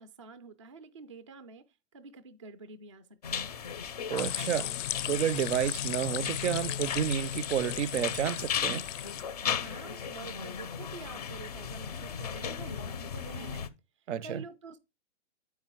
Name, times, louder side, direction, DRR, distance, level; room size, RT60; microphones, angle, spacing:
voice 1, 0.0-3.5 9.5-13.7 14.0-14.8, right 4 dB, 30° right, 0.4 m, -48 dB
sound 1, 3.2-13.7, left 7 dB, 35° left, 0.4 m, -37 dB
voice 2, 4.1-4.7 5.1-8.8 14.1-14.4, right 10 dB, 70° right, 0.6 m, -30 dB
sound 2, 4.2-9.2, left 12 dB, 85° left, 0.5 m, -36 dB
8.7 x 4.7 x 4.4 m
hypercardioid pair, 170°, 36 cm